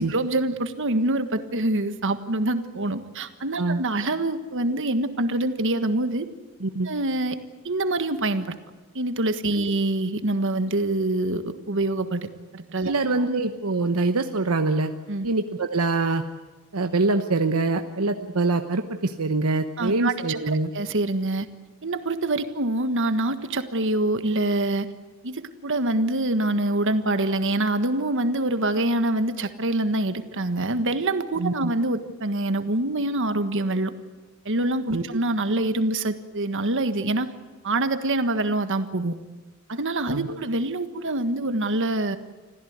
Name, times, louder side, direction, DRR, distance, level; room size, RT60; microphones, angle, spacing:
voice 1, 0.0-6.3 6.8-7.4 7.6-8.5 8.9-12.3 12.5-12.9 15.1-15.3 19.8-21.5 21.8-24.9 25.2-33.9 34.4-37.3 37.6-39.2 39.7-42.2, right 2 dB, 60° right, 10 dB, 1.5 m, -25 dB
voice 2, 6.6-6.9 9.6-9.7 12.8-14.9 15.2-16.2 16.7-20.7 31.4-31.7 34.9-35.2 40.1-40.4, right 3 dB, 80° right, 7 dB, 1.0 m, -24 dB
26.0 x 15.5 x 9.5 m, 1.3 s
head